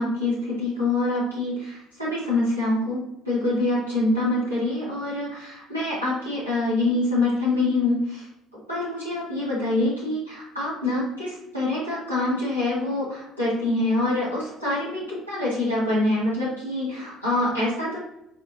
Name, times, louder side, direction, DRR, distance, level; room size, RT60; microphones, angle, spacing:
voice 1, 0.0-3.0 3.2-8.3 8.7-18.0, left 2 dB, 90° right, -10 dB, 1.7 m, -25 dB
4.6 x 4.3 x 2.7 m, 0.86 s
figure-of-eight pair, 55°, 0 cm